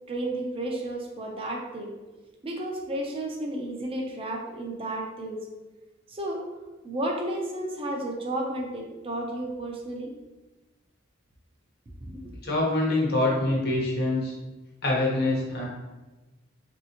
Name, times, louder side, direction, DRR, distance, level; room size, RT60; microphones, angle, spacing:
voice 1, 0.1-1.9 2.4-5.4 6.1-6.4 6.8-10.1 12.1-12.3, right 1 dB, 30° right, 0 dB, 0.4 m, -32 dB
voice 2, 12.4-14.3 14.8-15.6, left 2 dB, 55° left, -3 dB, 0.8 m, -25 dB
3.2 x 2.6 x 2.8 m, 1.1 s
head